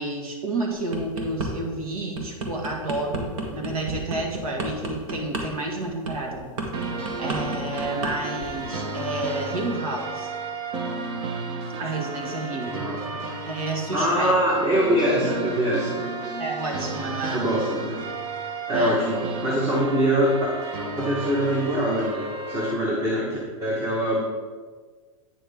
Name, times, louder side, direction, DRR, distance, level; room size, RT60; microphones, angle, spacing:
voice 1, 0.0-6.5 6.8-10.3 11.8-12.8 13.5-14.3 16.4-17.5 18.7-19.0, right 2 dB, 85° right, 0 dB, 1.8 m, -30 dB
sound 1, 0.7-1.5 1.9-8.1 8.4-8.7, right 3 dB, 65° right, 1.5 m, -31 dB
sound 2, 6.7-22.7, right 3 dB, 45° right, 1.0 m, -32 dB
voice 2, 12.7-13.2 13.9-16.0 17.3-18.0 18.7-20.4 21.0-24.2, equal, 15° right, -3 dB, 1.2 m, -23 dB
8.9 x 6.1 x 3.6 m, 1.5 s
supercardioid pair, 145°, 18 cm